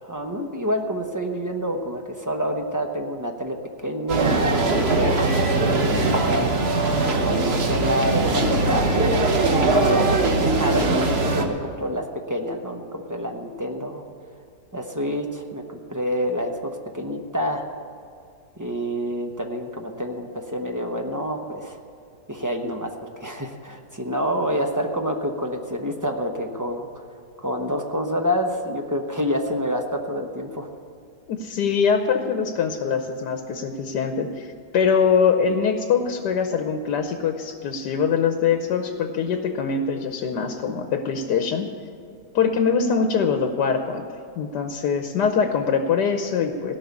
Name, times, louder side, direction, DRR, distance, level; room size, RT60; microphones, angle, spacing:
voice 1, 0.0-3.6 3.8-6.5 7.1-9.1 9.6-14.1 14.7-17.7 18.6-21.8 22.3-22.9 23.2-27.0 27.4-30.7, equal, 15° right, 3 dB, 0.7 m, -27 dB
sound 1, 4.1-11.4, right 3 dB, 45° right, 1.2 m, -21 dB
sound 2, 7.5-10.1, left 2 dB, 45° left, 1.4 m, -34 dB
voice 2, 31.3-41.7 42.3-44.0 44.4-46.8, left 6 dB, 85° left, 6 dB, 1.4 m, -23 dB
17.0 x 6.0 x 9.6 m, 2.3 s
omnidirectional pair, 1.8 m